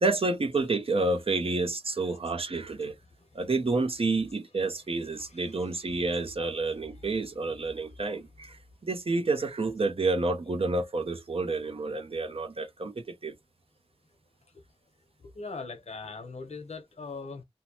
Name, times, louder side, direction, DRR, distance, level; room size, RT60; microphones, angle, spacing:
voice 1, 0.0-3.0 3.3-13.3, right 3 dB, 60° right, 0.7 m, -29 dB
voice 2, 5.0-6.3 6.8-7.8 15.2-17.4, left 4 dB, 90° left, 0.8 m, -43 dB
2.8 x 2.0 x 2.9 m
wide cardioid pair, 45°, 11 cm